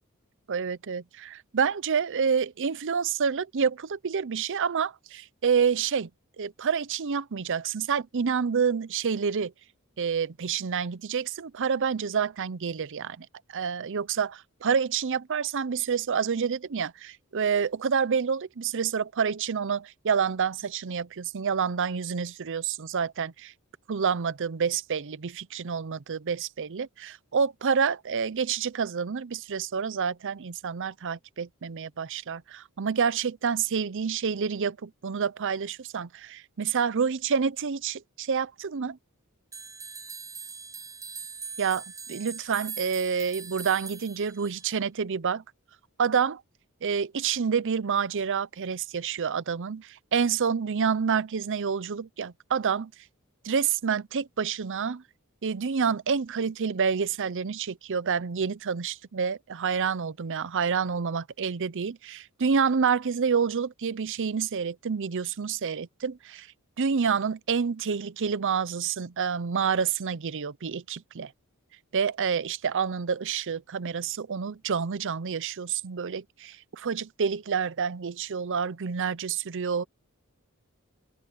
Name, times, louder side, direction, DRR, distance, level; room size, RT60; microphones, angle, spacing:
voice 1, 0.5-6.1 6.4-9.5 10.0-23.5 23.9-39.0 41.6-41.8 42.1-45.4 46.0-46.4 46.8-52.9 53.4-55.0 55.4-66.5 66.8-71.3 71.9-79.8, right 6 dB, 60° right, 0.6 m, -28 dB
sound 1, 39.5-44.7, right 5 dB, 15° right, 0.6 m, -41 dB
open air
head